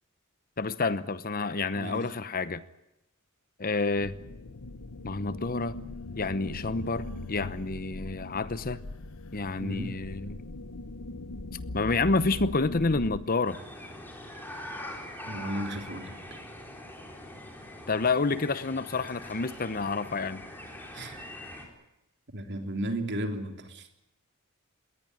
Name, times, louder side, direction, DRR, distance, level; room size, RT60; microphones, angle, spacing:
voice 1, 0.6-2.6 3.6-4.1 5.0-5.8 6.2-8.8 9.3-10.4 11.7-13.6 17.9-20.4, left 3 dB, 40° left, 15 dB, 0.9 m, -29 dB
voice 2, 1.7-2.1 9.6-10.0 15.2-16.4 20.9-21.1 22.3-23.9, right 1 dB, 55° right, 6 dB, 3.3 m, -34 dB
sound 1, 3.9-13.2, left 2 dB, 75° left, 1.0 m, -40 dB
sound 2, 13.4-21.6, left 1 dB, 10° left, 4.4 m, -43 dB
21.5 x 18.5 x 9.7 m, 0.92 s
head